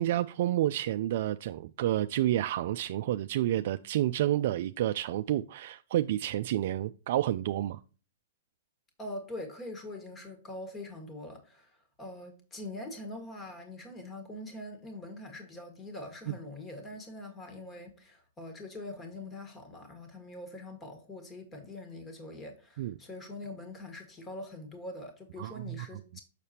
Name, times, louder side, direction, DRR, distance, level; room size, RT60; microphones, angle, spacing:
voice 1, 0.0-7.8 16.3-16.4 22.8-22.9 25.4-25.9, right 13 dB, 55° right, 0.3 m, -29 dB
voice 2, 9.0-26.2, left 1 dB, 15° left, 1.6 m, -43 dB
6.6 x 6.6 x 2.8 m
hypercardioid pair, 140°, 0 cm